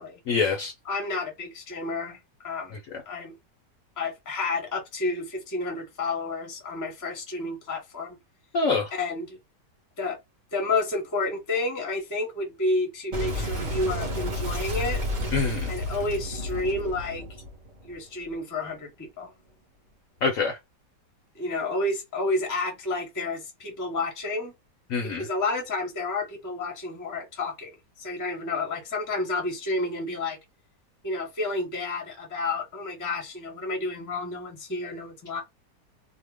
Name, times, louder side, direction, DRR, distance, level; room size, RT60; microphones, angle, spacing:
voice 1, 0.3-0.7 8.5-8.9 15.3-15.7 20.2-20.6 24.9-25.2, left 4 dB, 65° left, 0.9 m, -25 dB
voice 2, 0.8-2.8 3.1-3.3 4.0-8.2 8.9-9.4 10.0-10.2 10.5-15.0 15.7-17.2 17.9-19.3 21.3-24.5 25.1-30.4 31.0-35.4, left 2 dB, 15° left, 0.6 m, -30 dB
Boom, 13.1-18.3, equal, 40° right, 0.6 m, -31 dB
2.8 x 2.1 x 3.3 m
omnidirectional pair, 1.9 m